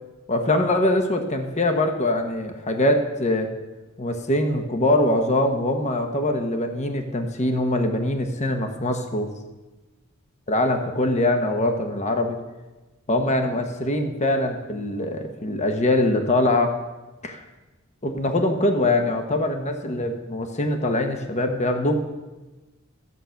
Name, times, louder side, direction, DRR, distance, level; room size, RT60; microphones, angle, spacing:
voice 1, 0.3-3.5 4.0-9.3 10.5-12.4 13.1-16.7 17.2-17.4 18.0-22.0, left 1 dB, 35° left, 5 dB, 1.1 m, -23 dB
14.0 x 8.0 x 5.8 m, 1.1 s
head